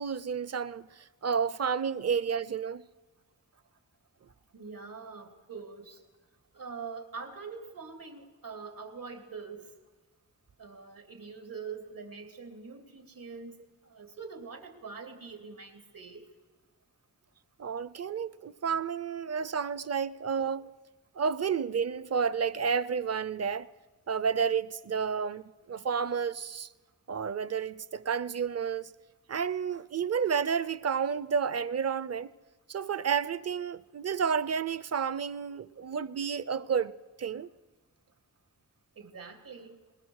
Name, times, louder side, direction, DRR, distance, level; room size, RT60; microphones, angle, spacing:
voice 1, 0.0-2.8 17.6-20.7 21.2-23.7 24.1-26.7 27.1-28.9 29.3-32.3 32.7-36.9 37.2-37.5, right 6 dB, 50° right, 0.6 m, -31 dB
voice 2, 4.5-6.0 6.5-9.7 10.6-16.2 39.0-39.8, right 5 dB, 85° right, 3.0 m, -44 dB
21.0 x 21.0 x 6.5 m
wide cardioid pair, 110°, 33 cm